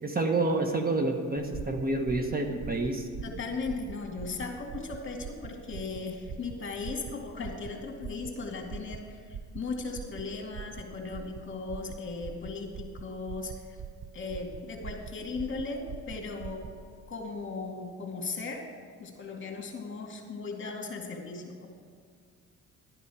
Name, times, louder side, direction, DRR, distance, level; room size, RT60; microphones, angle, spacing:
voice 1, 0.0-3.1, right 2 dB, 30° right, 4 dB, 1.2 m, -28 dB
sound 1, 1.5-16.8, right 6 dB, 45° right, 0.8 m, -43 dB
voice 2, 3.2-13.8 14.1-16.7 17.1-18.6 19.0-21.7, left 4 dB, 40° left, 1 dB, 2.2 m, -37 dB
12.0 x 10.0 x 4.9 m, 2.1 s
cardioid pair, 90°, 30 cm